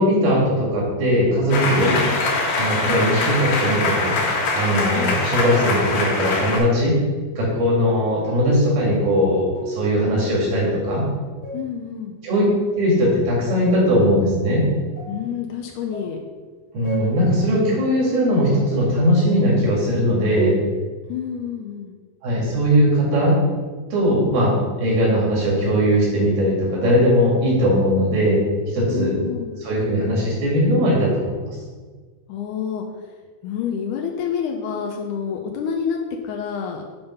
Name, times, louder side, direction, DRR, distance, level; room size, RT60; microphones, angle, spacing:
voice 1, 0.0-2.0 2.6-4.2 4.5-7.0 7.3-11.0 12.2-12.4 12.8-14.6 16.7-20.6 22.2-23.4 23.9-28.4 28.7-29.2 29.6-31.5, equal, 80° right, -5 dB, 4.0 m, -19 dB
sound 1, 1.5-6.6, left 2 dB, 60° left, 2.7 m, -23 dB
voice 2, 1.8-2.3 4.9-5.2 11.5-12.2 15.1-16.2 21.1-21.9 28.9-29.6 32.3-32.8 33.4-36.8, left 7 dB, 90° left, 2 dB, 1.8 m, -28 dB
sound 2, 8.1-8.4 8.8-9.2 9.5-9.9 10.2-10.5 10.8-11.8 12.9-13.1 14.0-14.2 15.0-15.3 15.9-16.2 16.8-17.3 18.1-18.6 19.2-19.6 20.3-20.5, right 3 dB, 45° left, 0.6 m, -34 dB
8.7 x 3.5 x 5.5 m, 1.4 s
omnidirectional pair, 4.2 m